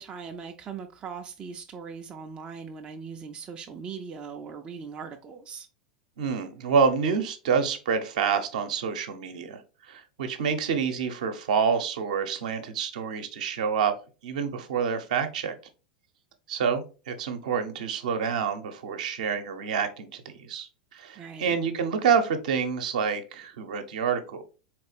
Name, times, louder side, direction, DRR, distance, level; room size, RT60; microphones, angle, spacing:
voice 1, 0.0-5.7 21.2-21.6, right 6 dB, 25° right, 0.5 m, -40 dB
voice 2, 6.2-13.9 14.2-15.5 16.5-24.4, right 6 dB, 60° right, 0.8 m, -27 dB
4.0 x 3.2 x 3.2 m
figure-of-eight pair, 85°, 4 cm